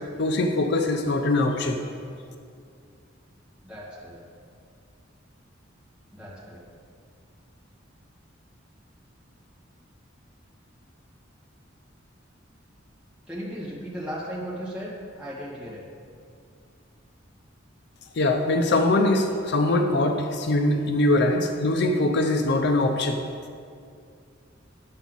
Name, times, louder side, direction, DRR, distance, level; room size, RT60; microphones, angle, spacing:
voice 1, 0.2-1.8 18.1-23.3, left 2 dB, 60° left, 5 dB, 0.5 m, -22 dB
voice 2, 3.6-4.3 6.1-6.6 13.3-15.9, equal, 5° right, -7 dB, 2.0 m, -36 dB
9.7 x 7.1 x 4.0 m, 2.3 s
head